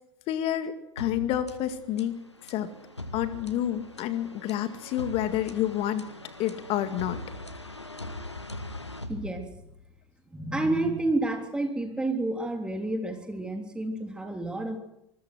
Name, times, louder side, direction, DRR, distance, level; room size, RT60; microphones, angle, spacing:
voice 1, 0.3-2.2 2.5-2.7 3.1-6.0 6.4-7.2, left 11 dB, 45° left, 11 dB, 2.0 m, -29 dB
sound 1, 1.0-9.9, left 1 dB, 85° left, 1.5 m, -41 dB
voice 2, 9.1-9.5 10.3-14.8, right 2 dB, 5° right, 4 dB, 3.5 m, -29 dB
25.5 x 21.0 x 6.1 m, 0.83 s
figure-of-eight pair, 80°, 14 cm